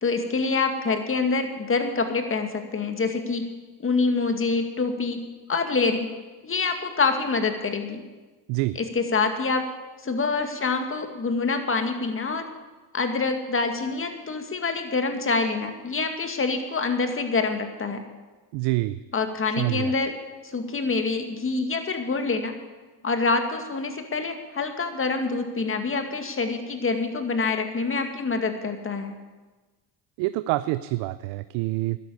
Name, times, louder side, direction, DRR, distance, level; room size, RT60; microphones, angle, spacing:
voice 1, 0.0-3.5 3.8-6.1 6.4-8.0 8.8-9.6 10.0-12.4 12.9-18.0 19.1-20.1 20.4-22.5 23.0-29.2, left 4 dB, 30° left, 6 dB, 2.2 m, -26 dB
voice 2, 18.5-19.0 19.6-19.9 30.2-32.0, right 18 dB, 90° right, 14 dB, 0.6 m, -26 dB
12.5 x 11.0 x 8.6 m, 1.2 s
supercardioid pair, 90°, 41 cm